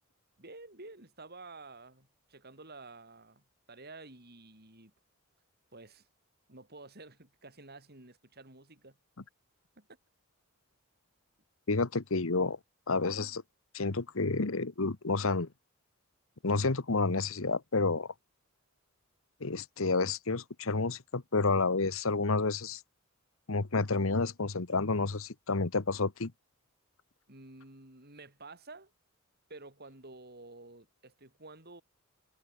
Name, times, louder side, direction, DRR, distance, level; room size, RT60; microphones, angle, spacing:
voice 1, 0.4-4.9 5.7-6.1 6.5-9.0 9.8-9.9 27.3-28.9 29.5-31.8, right 3 dB, 45° right, 7.1 m, -51 dB
voice 2, 11.7-12.6 12.9-13.4 13.7-15.5 16.4-18.1 19.4-22.8 23.5-26.3, left 3 dB, 70° left, 1.2 m, -30 dB
head